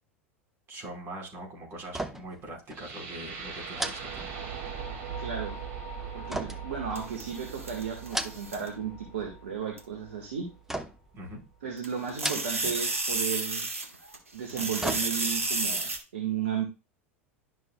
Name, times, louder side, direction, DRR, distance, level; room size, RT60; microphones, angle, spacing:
voice 1, 0.7-4.2 11.1-11.4, right 1 dB, 35° right, 0 dB, 4.6 m, -42 dB
sound 1, 1.9-2.4 2.7-2.9 3.7-4.8 6.3-7.4 7.9-8.7 9.0-9.6 10.7-11.2 12.1-12.8 13.1-13.2 14.3-15.5 15.9-16.0, right 1 dB, 5° right, 0.8 m, -36 dB
sound 2, 2.7-10.8, right 6 dB, 55° right, 2.2 m, -40 dB
voice 2, 5.2-5.6 6.1-10.5 11.6-13.7 14.3-16.6, right 7 dB, 70° right, 1 dB, 1.7 m, -34 dB
sound 3, 6.9-8.7 9.8-9.9 11.8-14.2 14.5-16.0, right 2 dB, 85° right, 1.5 m, -31 dB
11.5 x 6.1 x 2.3 m, 0.30 s
figure-of-eight pair, 80°, 7 cm